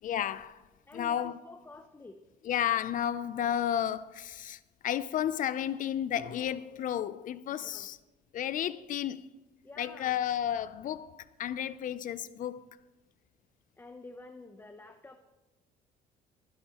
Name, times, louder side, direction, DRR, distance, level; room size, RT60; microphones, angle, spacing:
voice 1, 0.0-0.6 0.9-1.4 2.4-8.0 8.3-9.3 9.8-12.7, left 10 dB, 50° left, 0.5 m, -32 dB
voice 2, 0.9-2.2 7.6-7.9 9.6-10.2 13.8-15.2, left 2 dB, 15° left, 0.7 m, -49 dB
19.5 x 11.0 x 3.0 m
cardioid pair, 110°, 17 cm